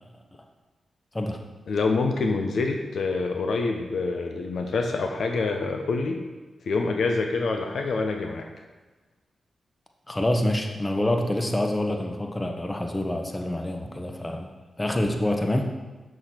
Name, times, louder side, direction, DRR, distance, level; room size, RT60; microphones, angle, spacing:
voice 1, 1.7-6.2 6.7-8.5, left 3 dB, 75° left, 3 dB, 0.7 m, -26 dB
voice 2, 10.1-14.5 14.8-15.7, left 1 dB, 20° left, 3 dB, 1.1 m, -26 dB
6.6 x 6.2 x 4.4 m, 1.2 s
supercardioid pair, 45°, 0 cm